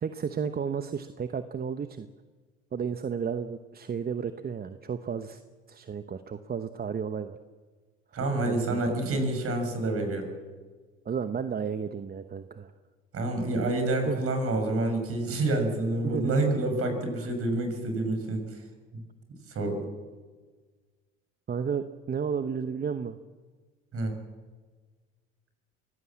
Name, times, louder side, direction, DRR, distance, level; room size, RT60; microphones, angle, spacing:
voice 1, 0.0-2.1 2.7-5.4 5.7-7.4 8.4-9.0 11.0-12.7 14.1-14.2 16.0-16.4 17.2-17.3 21.5-23.2, right 6 dB, 30° right, 10 dB, 1.0 m, -32 dB
voice 2, 8.1-10.3 13.1-18.6 19.5-19.8 23.9-24.1, right 2 dB, 45° right, 5 dB, 6.5 m, -28 dB
24.0 x 17.5 x 7.5 m, 1.4 s
hypercardioid pair, 70°, 31 cm